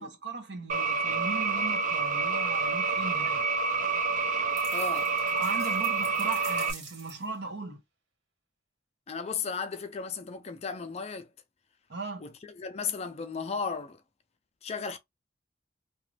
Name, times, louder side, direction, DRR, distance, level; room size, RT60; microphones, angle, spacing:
voice 1, 0.0-3.4 5.4-7.8 11.9-12.2, right 4 dB, 65° right, 1.0 m, -37 dB
sound 1, 0.7-6.7, right 4 dB, 45° right, 0.6 m, -28 dB
sound 2, 4.6-7.4, right 5 dB, 85° right, 1.2 m, -45 dB
voice 2, 4.7-5.1 9.1-11.3 12.2-14.0 14.6-15.0, left 5 dB, 35° left, 0.4 m, -35 dB
2.9 x 2.4 x 3.2 m
head